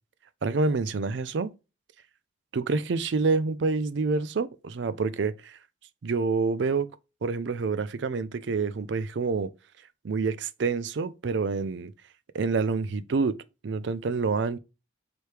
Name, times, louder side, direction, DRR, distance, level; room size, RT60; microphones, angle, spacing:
voice 1, 0.4-1.5 2.5-5.6 6.0-7.0 7.2-9.5 10.0-11.9 12.3-13.4 13.6-14.6, right 4 dB, 65° right, 0.4 m, -27 dB
3.3 x 3.1 x 4.5 m
head